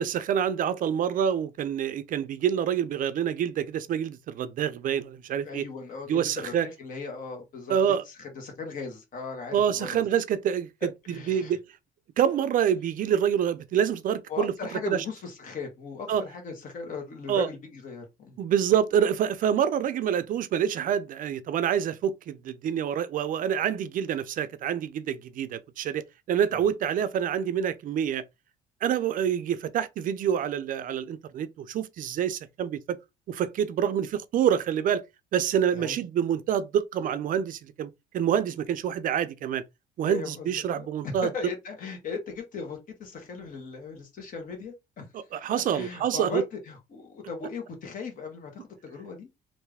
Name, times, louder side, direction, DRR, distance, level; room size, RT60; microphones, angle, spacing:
voice 1, 0.0-5.6 6.1-6.7 7.7-8.0 9.5-10.7 11.3-11.6 12.2-14.5 14.9-15.0 16.1-16.2 17.3-17.5 18.4-28.2 28.8-33.0 33.3-35.0 35.3-39.6 40.0-41.3 45.1-46.4, right 9 dB, 55° right, 0.5 m, -27 dB
voice 2, 5.4-10.1 11.1-11.6 14.3-18.4 26.5-26.6 35.7-36.0 40.0-45.1 45.7-49.3, left 4 dB, 55° left, 1.4 m, -38 dB
3.2 x 2.6 x 3.4 m
cardioid pair, 110°, 17 cm